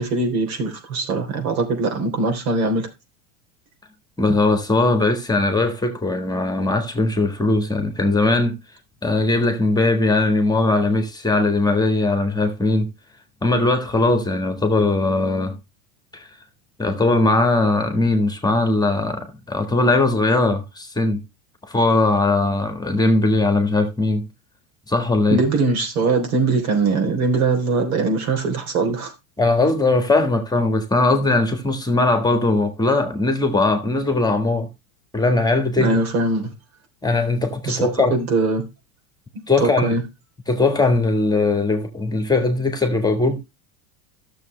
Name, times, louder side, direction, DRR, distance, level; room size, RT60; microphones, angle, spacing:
voice 1, 0.0-2.9 25.3-29.1 35.8-36.5 37.7-37.8 38.1-38.6 39.6-40.0, right 3 dB, 80° right, 3.6 m, -21 dB
voice 2, 4.2-8.6 9.0-12.9 13.4-15.6 16.1-16.3 16.8-21.2 21.6-24.3 24.9-25.4 29.4-34.7 35.1-36.0 37.0-38.1 39.5-40.0 40.5-43.4, left 2 dB, 10° left, 1.5 m, -19 dB
12.5 x 7.0 x 3.2 m
supercardioid pair, 125°, 42 cm